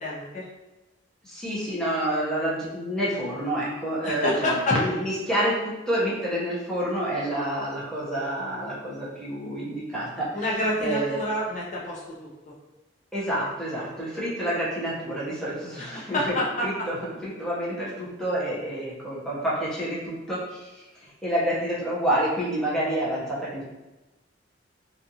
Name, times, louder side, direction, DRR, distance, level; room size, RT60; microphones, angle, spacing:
voice 1, 0.0-0.5 4.0-4.6 10.3-12.5 15.9-16.5, left 1 dB, 40° left, -5 dB, 0.5 m, -28 dB
voice 2, 1.2-11.2 13.1-17.0 17.2-23.6, right 1 dB, 5° left, -8 dB, 0.7 m, -28 dB
2.5 x 2.4 x 2.7 m, 1.1 s
head